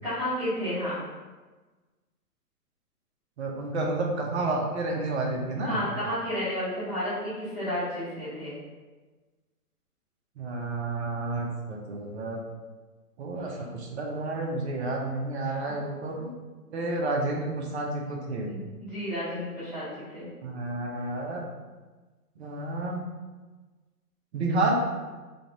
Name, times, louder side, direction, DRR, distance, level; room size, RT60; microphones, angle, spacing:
voice 1, 0.0-1.0 5.6-8.5 13.4-13.6 15.4-15.5 18.5-19.9 20.1-20.3, equal, 5° right, -17 dB, 0.5 m, -32 dB
voice 2, 3.4-5.8 10.4-12.4 13.2-16.3 16.7-18.5 20.4-21.4 22.4-23.0 24.3-24.8, right 2 dB, 45° right, -1 dB, 0.9 m, -30 dB
3.9 x 2.5 x 4.7 m, 1.3 s
hypercardioid pair, 140°, 47 cm